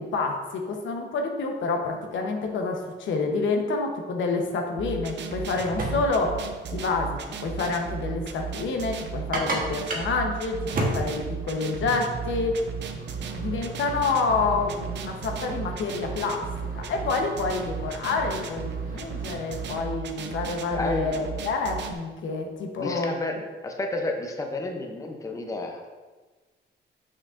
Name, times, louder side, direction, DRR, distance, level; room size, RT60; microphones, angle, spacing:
voice 1, 0.0-6.4 6.7-12.6 13.4-16.4 16.7-23.1, left 4 dB, 85° left, 2 dB, 0.9 m, -28 dB
sound 1, 4.8-21.9, right 6 dB, 65° right, 0.6 m, -35 dB
sound 2, 5.3-19.8, right 2 dB, 45° right, 1.1 m, -36 dB
voice 2, 20.7-21.4 22.8-25.8, left 2 dB, 15° left, 2 dB, 0.6 m, -32 dB
6.5 x 6.1 x 2.5 m, 1.3 s
wide cardioid pair, 135°, 19 cm